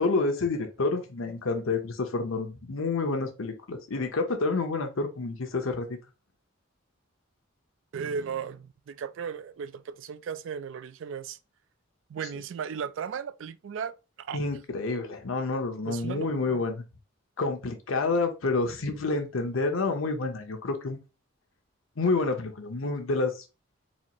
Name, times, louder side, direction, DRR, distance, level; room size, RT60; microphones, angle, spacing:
voice 1, 0.0-5.9 14.3-16.8 17.4-21.0 22.0-23.3, left 3 dB, 90° left, 0.8 m, -28 dB
voice 2, 7.9-11.4 12.1-14.4 15.8-16.6, right 6 dB, 70° right, 0.3 m, -36 dB
4.1 x 2.4 x 3.0 m
head